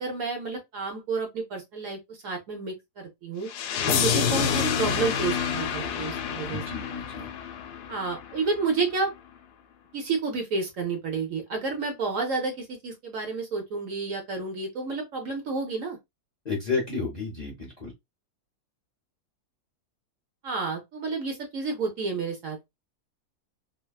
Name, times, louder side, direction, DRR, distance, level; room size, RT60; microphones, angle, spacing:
voice 1, 0.0-3.5 3.8-6.6 7.9-9.1 9.9-16.0 20.4-22.6, right 4 dB, 60° right, 1.1 m, -30 dB
sound 1, 3.5-8.4, left 7 dB, 85° left, 1.1 m, -28 dB
voice 2, 6.5-7.3 16.4-17.9, left 4 dB, 35° left, 0.7 m, -31 dB
3.3 x 2.2 x 2.2 m
omnidirectional pair, 1.7 m